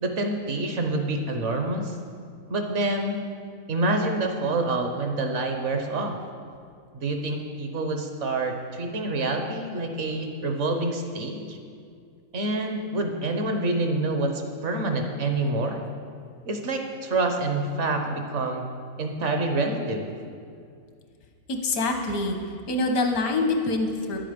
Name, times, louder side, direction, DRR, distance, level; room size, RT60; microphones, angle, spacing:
voice 1, 0.0-1.9 2.5-3.2 3.7-6.2 6.9-11.6 12.3-15.8 16.5-18.6 19.0-20.1, right 2 dB, 60° right, 4 dB, 1.1 m, -27 dB
voice 2, 21.5-22.4 22.7-24.2, left 2 dB, 90° left, 4 dB, 1.5 m, -25 dB
10.0 x 7.7 x 5.1 m, 2.2 s
omnidirectional pair, 1.5 m